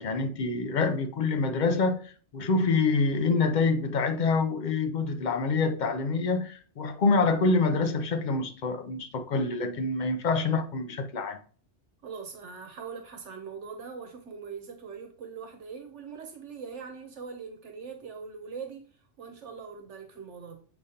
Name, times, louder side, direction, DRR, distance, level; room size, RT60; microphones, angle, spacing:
voice 1, 0.0-11.4, left 3 dB, 50° left, 0.6 m, -26 dB
voice 2, 12.0-18.8 19.2-20.6, right 5 dB, 80° right, 1.1 m, -41 dB
6.9 x 5.0 x 2.8 m
omnidirectional pair, 1.2 m